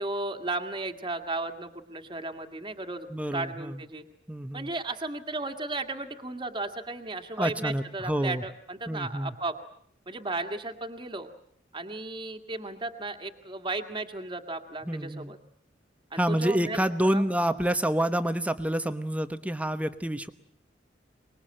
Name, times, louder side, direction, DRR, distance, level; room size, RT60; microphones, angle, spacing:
voice 1, 0.0-4.0 4.5-9.5 10.1-11.3 11.7-15.4 16.1-16.8 17.0-17.2, right 2 dB, 25° right, 5 dB, 1.9 m, -35 dB
voice 2, 3.1-3.8 4.3-4.7 7.4-8.4 8.9-9.3 14.8-15.3 16.1-20.3, right 1 dB, 10° right, 10 dB, 1.1 m, -28 dB
24.5 x 21.5 x 8.9 m, 0.65 s
head